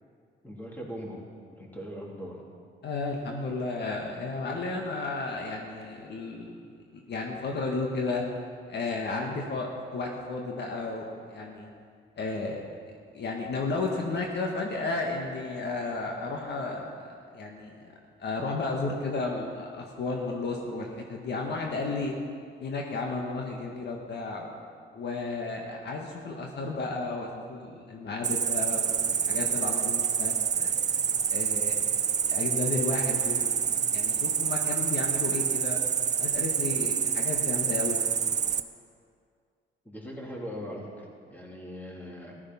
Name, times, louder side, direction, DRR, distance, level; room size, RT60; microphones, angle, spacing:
voice 1, 0.4-1.2 1.6-2.4 39.8-42.3, equal, 10° left, -2 dB, 3.3 m, -40 dB
voice 2, 2.8-6.6 6.9-8.2 8.7-11.7 12.1-12.6 13.1-17.7 18.2-22.1 22.6-24.5 24.9-30.7 31.3-31.8 32.3-33.6 33.9-35.8 36.2-38.0, left 3 dB, 60° left, 1 dB, 1.6 m, -33 dB
Cricket, 28.2-38.6, right 7 dB, 35° right, 0.6 m, -27 dB
14.5 x 12.0 x 5.6 m, 2.2 s
cardioid pair, 90°, 20 cm